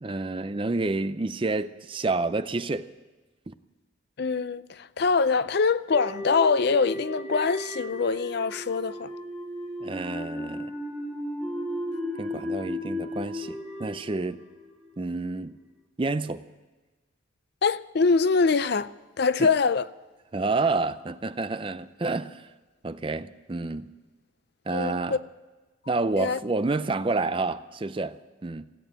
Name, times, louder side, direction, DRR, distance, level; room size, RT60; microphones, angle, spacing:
voice 1, 0.0-2.9 3.5-3.6 9.8-10.7 12.2-14.4 15.0-15.6 16.0-16.4 19.4-19.5 20.3-22.5 22.8-23.9 24.7-25.2 25.9-28.7, right 3 dB, 25° right, 0.4 m, -29 dB
voice 2, 4.2-9.1 17.6-19.9 24.7-25.2 26.1-26.4, left 4 dB, 55° left, 0.4 m, -24 dB
sound 1, 5.9-15.1, left 1 dB, 5° right, 2.1 m, -35 dB
16.0 x 8.8 x 9.0 m
head